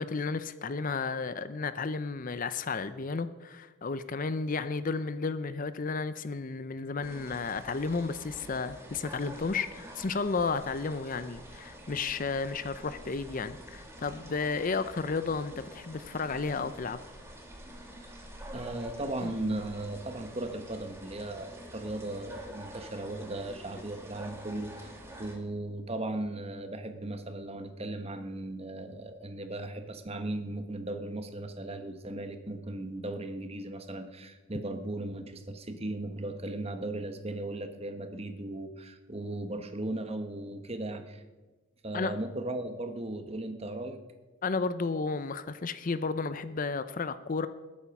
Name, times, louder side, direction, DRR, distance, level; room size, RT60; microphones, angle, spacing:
voice 1, 0.0-17.0 19.2-19.3 41.9-42.1 44.4-47.5, left 4 dB, 40° left, 13 dB, 0.5 m, -32 dB
sound 1, 7.0-25.4, right 1 dB, 10° right, 2.1 m, -47 dB
voice 2, 18.5-24.9 25.2-41.2 41.8-44.0, right 1 dB, 30° right, 8 dB, 1.2 m, -37 dB
20.0 x 8.7 x 5.9 m, 1.3 s
head